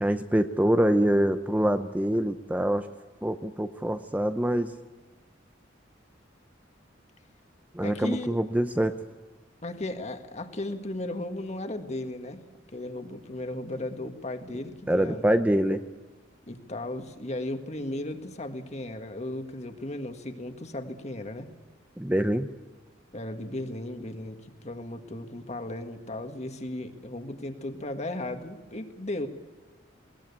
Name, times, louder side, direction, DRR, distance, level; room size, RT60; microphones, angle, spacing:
voice 1, 0.0-2.9 3.2-4.7 7.7-8.9 14.9-15.8 22.0-22.5, right 1 dB, 10° right, 8 dB, 0.6 m, -25 dB
voice 2, 7.8-8.4 9.6-12.4 12.7-15.3 16.5-21.5 23.1-29.3, left 1 dB, 35° left, 7 dB, 1.8 m, -35 dB
21.0 x 18.5 x 8.4 m, 1.3 s
head